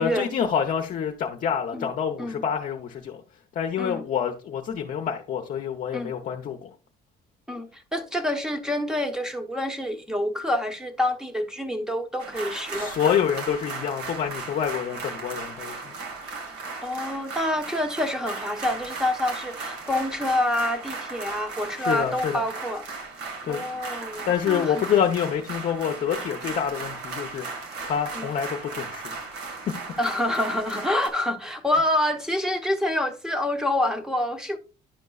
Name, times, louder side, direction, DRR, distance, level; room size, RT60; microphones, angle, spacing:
voice 1, 0.0-3.2 3.5-6.7 12.7-16.0 21.8-22.4 23.4-23.6 24.3-27.5 27.8-29.2, left 8 dB, 50° left, 0.7 m, -27 dB
voice 2, 7.5-13.0 16.8-22.9 23.5-24.9 28.1-28.3 30.0-34.6, left 1 dB, 5° right, 1.0 m, -27 dB
sound 1, 12.2-31.1, right 4 dB, 85° right, 1.5 m, -36 dB
10.0 x 5.2 x 2.3 m
cardioid pair, 110°, 17 cm